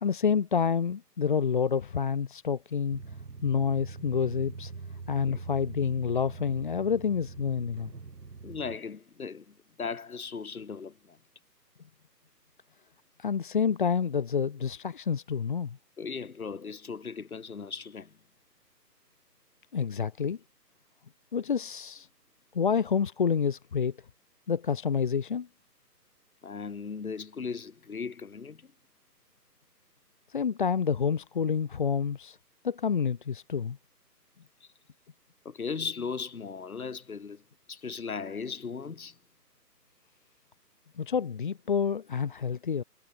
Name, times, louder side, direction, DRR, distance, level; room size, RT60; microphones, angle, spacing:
voice 1, 0.0-3.0 3.4-4.7 5.1-7.9 13.2-15.8 19.7-20.4 21.3-22.1 22.5-23.9 24.5-25.5 30.3-32.4 32.6-33.8 41.0-42.8, left 6 dB, 30° left, 1.8 m, -28 dB
sound 1, 2.9-8.8, right 4 dB, 75° right, 7.1 m, -43 dB
voice 2, 8.4-11.2 16.0-18.1 26.4-28.7 34.6-34.7 35.4-37.4 37.7-39.2, left 5 dB, 55° left, 6.5 m, -37 dB
hypercardioid pair, 170°, 50 cm